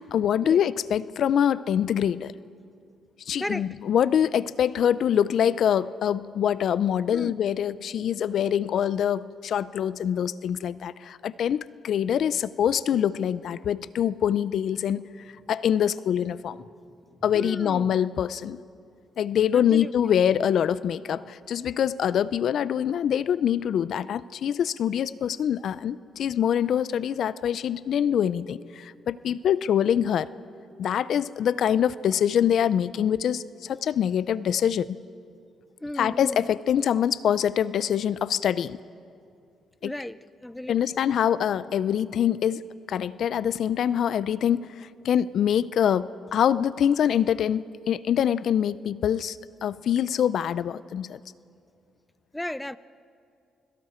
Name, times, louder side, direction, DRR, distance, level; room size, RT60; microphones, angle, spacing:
voice 1, 0.0-2.3 3.3-15.1 15.5-16.6 17.2-18.6 19.2-30.3 30.8-35.0 36.0-38.8 39.8-39.9 40.7-42.6 42.9-51.2, left 9 dB, 65° left, 18 dB, 0.4 m, -24 dB
voice 2, 3.4-3.8 7.1-7.4 17.3-18.0 19.5-20.2 35.8-36.5 39.8-41.0 52.3-52.8, left 1 dB, 10° left, 16 dB, 0.5 m, -35 dB
29.5 x 22.5 x 4.4 m, 2.4 s
cardioid pair, 90°, 0 cm